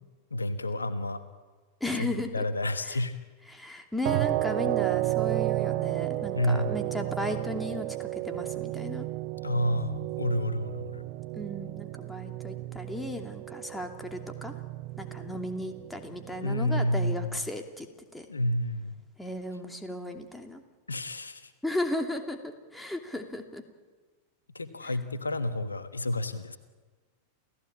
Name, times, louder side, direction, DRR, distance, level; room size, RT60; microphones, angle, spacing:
voice 1, 0.3-1.2 2.0-2.1 2.3-3.1 6.3-6.8 9.4-11.0 16.4-17.4 18.3-19.0 20.9-21.5 24.5-26.6, left 1 dB, 80° left, 11 dB, 1.3 m, -29 dB
voice 2, 1.8-2.4 2.9-3.0 3.5-9.1 11.3-14.5 15.0-17.9 18.1-18.3 19.2-20.6 21.6-23.6 24.8-25.0, left 1 dB, 5° left, 4 dB, 2.7 m, -35 dB
sound 1, 4.1-17.0, right 16 dB, 50° right, 0.9 m, -33 dB
29.0 x 16.5 x 8.8 m, 1.4 s
figure-of-eight pair, 90°, 0 cm